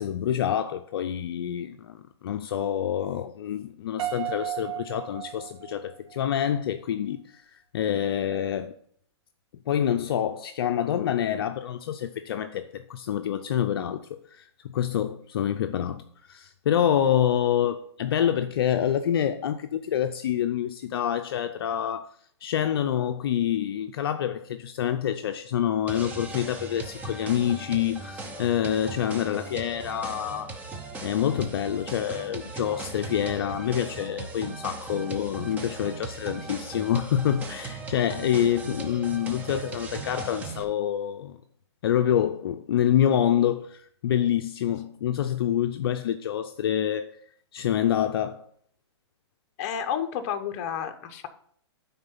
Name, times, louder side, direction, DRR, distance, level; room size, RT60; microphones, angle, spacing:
voice 1, 0.0-8.7 9.7-22.1 22.4-30.5 31.0-41.4 41.8-47.1 47.5-48.4, left 10 dB, 55° left, 0.5 m, -27 dB
Piano, 4.0-6.2, right 13 dB, 65° right, 1.2 m, -35 dB
sound 1, 25.9-40.6, right 3 dB, 10° right, 0.6 m, -38 dB
voice 2, 49.6-51.3, left 8 dB, 35° left, 0.8 m, -31 dB
9.5 x 3.8 x 5.5 m
hypercardioid pair, 155°, 15 cm